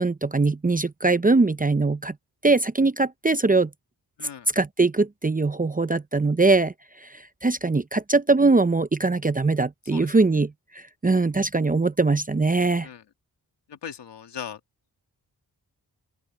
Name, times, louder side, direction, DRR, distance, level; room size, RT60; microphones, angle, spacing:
voice 1, 0.0-2.1 2.4-3.7 4.5-6.7 7.0-12.9, right 3 dB, 20° right, 0.7 m, -22 dB
voice 2, 13.7-14.6, left 8 dB, 90° left, 2.1 m, -38 dB
open air
cardioid pair, 55°, 41 cm